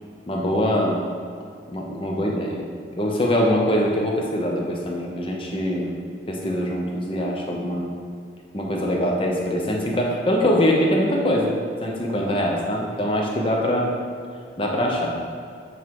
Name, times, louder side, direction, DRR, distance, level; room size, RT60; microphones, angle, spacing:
voice 1, 0.3-1.0 1.7-2.6 3.0-5.9 6.3-7.9 8.5-11.5 11.8-14.0 14.6-15.1, equal, 25° left, -1 dB, 0.8 m, -23 dB
8.0 x 3.7 x 4.7 m, 2.1 s
head